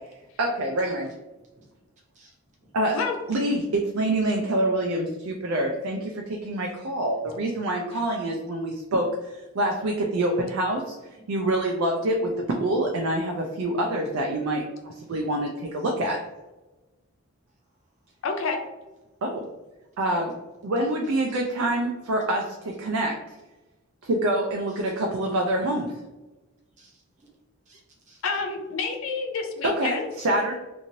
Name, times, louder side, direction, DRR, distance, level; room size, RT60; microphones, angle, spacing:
voice 1, 0.4-1.1 2.7-3.0 3.3-10.9 11.3-16.2 19.2-19.4 20.0-20.3 20.6-23.2 24.0-25.9 29.6-30.6, right 1 dB, 75° right, 1 dB, 0.4 m, -26 dB
voice 2, 2.1-2.7 7.2-7.4 21.0-21.2 21.5-21.6 24.7-24.8 26.8-27.4 27.7-28.2, right 1 dB, 35° right, -2 dB, 0.8 m, -55 dB
voice 3, 18.2-18.6 28.2-30.1, left 4 dB, 65° left, 3 dB, 0.4 m, -28 dB
3.0 x 2.6 x 2.6 m, 1.1 s
head